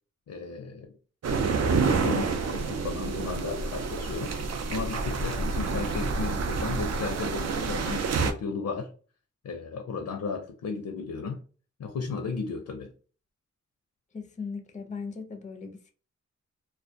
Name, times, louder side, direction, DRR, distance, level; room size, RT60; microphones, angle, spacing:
voice 1, 0.3-0.9 1.4-4.4 4.7-8.9 9.4-11.4 11.8-12.9, left 4 dB, 75° left, 0.5 m, -35 dB
sound 1, 1.2-8.3, right 4 dB, 60° right, 0.4 m, -28 dB
voice 2, 14.1-15.9, left 5 dB, 25° left, 0.5 m, -38 dB
2.2 x 2.2 x 2.5 m
wide cardioid pair, 70°, 29 cm